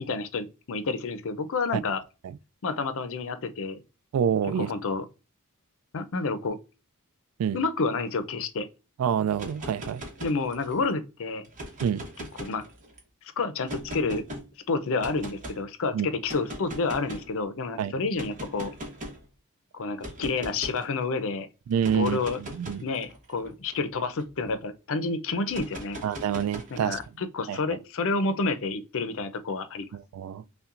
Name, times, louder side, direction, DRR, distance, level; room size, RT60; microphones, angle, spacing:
voice 1, 0.0-2.0 2.6-3.8 4.6-5.0 5.9-6.6 7.5-8.7 10.2-11.5 12.4-12.6 13.4-14.2 14.7-18.7 19.7-21.5 21.9-22.4 22.8-26.0 26.7-29.9, left 3 dB, 65° left, 0.6 m, -29 dB
voice 2, 4.1-4.7 7.4-7.6 9.0-10.0 11.8-12.0 15.9-16.1 17.8-17.9 21.7-22.8 26.0-27.0 27.5-27.8 29.9-30.4, right 8 dB, 70° right, 0.3 m, -27 dB
sound 1, 9.3-10.8 11.4-13.0 13.7-14.4 15.0-15.6 16.2-17.3 18.2-19.2 20.0-20.8 21.7-24.5 25.5-27.0, equal, 35° right, 1.0 m, -40 dB
5.6 x 2.2 x 2.5 m
head